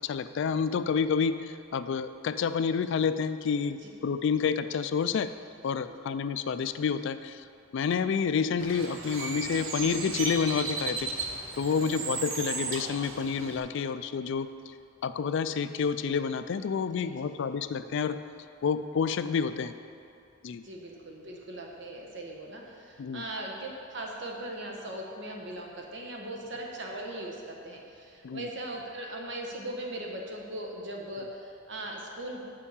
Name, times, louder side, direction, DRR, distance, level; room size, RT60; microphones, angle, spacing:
voice 1, 0.0-5.3 5.6-7.4 7.7-11.1 11.6-14.5 15.0-18.2 18.6-19.7 20.4-20.6 23.0-23.2 28.2-28.5, left 6 dB, 65° left, 12 dB, 0.3 m, -29 dB
Bird, 8.6-13.6, right 4 dB, 80° right, 0.9 m, -35 dB
voice 2, 16.9-17.3 20.6-32.4, right 1 dB, 60° right, 0 dB, 1.2 m, -39 dB
6.8 x 5.6 x 7.1 m, 2.6 s
head